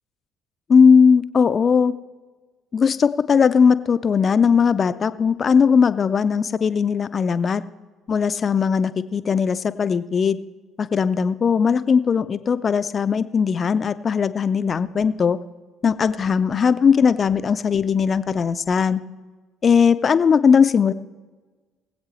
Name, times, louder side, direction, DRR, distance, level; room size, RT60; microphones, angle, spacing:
voice 1, 0.7-1.9 2.7-7.6 8.1-10.4 10.8-15.4 15.8-19.0 19.6-20.9, left 6 dB, 40° left, 13 dB, 0.6 m, -18 dB
21.5 x 8.1 x 3.2 m, 1.3 s
hypercardioid pair, 55°, 0 cm